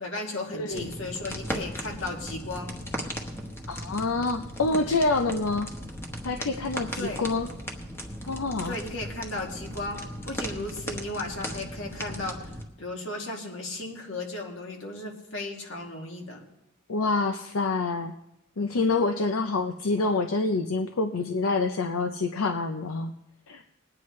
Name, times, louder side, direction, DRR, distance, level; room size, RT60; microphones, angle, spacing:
voice 1, 0.0-2.7 6.9-7.2 8.7-12.5 12.8-16.4, left 2 dB, 65° left, 1 dB, 2.2 m, -35 dB
voice 2, 0.5-0.9 3.7-5.7 6.2-7.5 8.3-8.8 16.9-18.1 18.6-23.1 23.5-23.6, left 3 dB, 85° left, 6 dB, 0.6 m, -27 dB
sound 1, 0.7-12.6, equal, 10° left, 1.1 m, -37 dB
21.0 x 9.7 x 3.2 m, 0.87 s
head